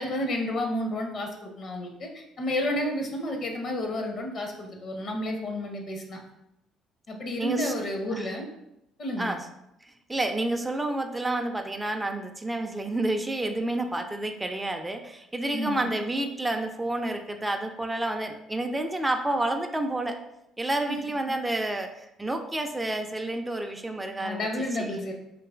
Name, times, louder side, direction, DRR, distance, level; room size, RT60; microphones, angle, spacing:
voice 1, 0.0-6.2 7.1-8.5 9.0-9.3 15.5-15.9 20.9-21.0 24.2-25.1, left 1 dB, 50° left, 3 dB, 0.6 m, -31 dB
voice 2, 7.4-7.7 8.1-8.3 9.2-9.5 9.8-20.2 20.6-24.5 24.8-25.0, right 1 dB, 15° right, 5 dB, 0.4 m, -29 dB
3.9 x 2.9 x 2.3 m, 0.84 s
hypercardioid pair, 55°, 0 cm